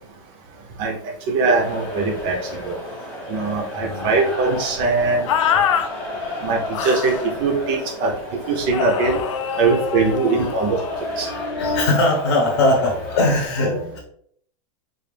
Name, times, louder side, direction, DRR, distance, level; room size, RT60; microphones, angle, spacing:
voice 1, 1.3-2.7 3.3-5.3 6.4-7.1 7.4-8.1 8.5-9.2 9.6-10.8 11.2-11.3, right 4 dB, 25° right, 1 dB, 0.6 m, -21 dB
sound 1, 1.5-13.5, left 1 dB, 5° left, 0.8 m, -32 dB
voice 2, 3.7-4.2 5.0-5.6 6.2-6.5 8.0-8.7 9.5-9.6 10.1-10.5 10.8-14.0, left 2 dB, 45° left, -1 dB, 0.9 m, -23 dB
sound 2, 5.3-5.9 6.7-7.2 8.7-11.0, left 8 dB, 70° left, 0.5 m, -24 dB
4.0 x 2.5 x 3.2 m, 0.64 s
supercardioid pair, 180°, 17 cm